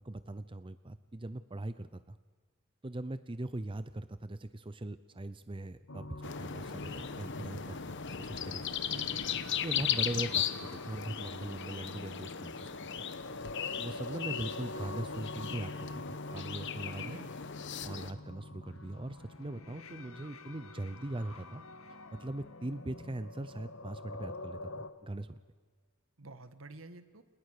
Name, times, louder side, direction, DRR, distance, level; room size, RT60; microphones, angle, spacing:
voice 1, 0.0-2.2 2.8-8.7 9.5-10.4 10.7-12.7 13.7-16.0 16.3-17.2 17.8-21.6 22.1-25.4, right 1 dB, 25° right, 12 dB, 0.7 m, -40 dB
sound 1, 5.9-24.9, left 2 dB, 85° left, 1.9 m, -46 dB
sound 2, 6.2-18.1, left 8 dB, 60° left, 1.2 m, -37 dB
voice 2, 8.8-9.4 17.0-17.3 26.2-27.2, right 2 dB, 70° right, 10 dB, 1.8 m, -50 dB
29.5 x 28.5 x 6.8 m, 1.5 s
head